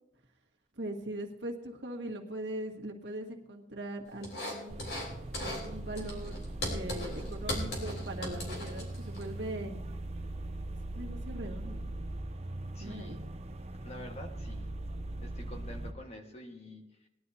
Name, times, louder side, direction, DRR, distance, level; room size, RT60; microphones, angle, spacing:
voice 1, 0.8-4.8 5.4-9.8 10.8-12.0 12.8-13.3, right 1 dB, 85° right, 1 dB, 1.8 m, -41 dB
sound 1, 4.2-5.1 5.3-5.7 6.0-9.2, left 1 dB, 75° left, 3.8 m, -38 dB
sound 2, 4.7-15.9, right 1 dB, 35° right, 0.7 m, -40 dB
voice 2, 12.7-13.2 13.8-14.7 15.2-17.1, left 1 dB, 35° left, 2 dB, 1.6 m, -47 dB
20.0 x 11.5 x 2.8 m, 0.86 s
head